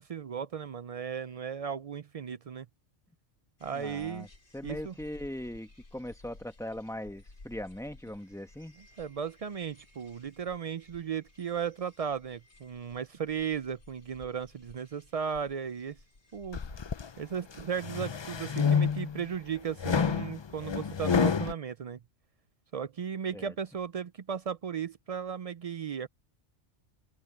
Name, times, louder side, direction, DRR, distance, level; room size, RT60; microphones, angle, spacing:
voice 1, 0.0-2.7 3.6-4.3 4.6-4.9 9.0-16.0 16.3-16.6 17.2-22.0 22.7-26.1, right 7 dB, 60° right, 0.4 m, -36 dB
sound 1, 3.6-17.4, left 2 dB, 70° left, 3.2 m, -55 dB
voice 2, 3.7-4.3 4.5-8.8 23.3-23.5, left 1 dB, 5° left, 1.1 m, -40 dB
sound 2, 16.5-17.1 17.6-19.2 19.8-21.5, left 6 dB, 50° left, 0.3 m, -28 dB
open air
omnidirectional pair, 1.2 m